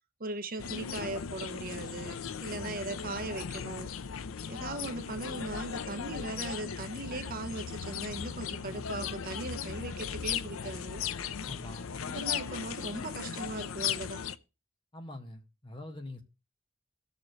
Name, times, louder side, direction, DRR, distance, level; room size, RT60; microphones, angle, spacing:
voice 1, 0.2-3.9 4.5-11.0 12.1-14.2, right 2 dB, 45° right, 1.0 m, -39 dB
sound 1, 0.6-14.4, left 7 dB, 90° left, 0.6 m, -37 dB
voice 2, 11.4-11.9 14.9-16.2, left 1 dB, 25° left, 1.4 m, -44 dB
18.5 x 6.8 x 3.2 m
head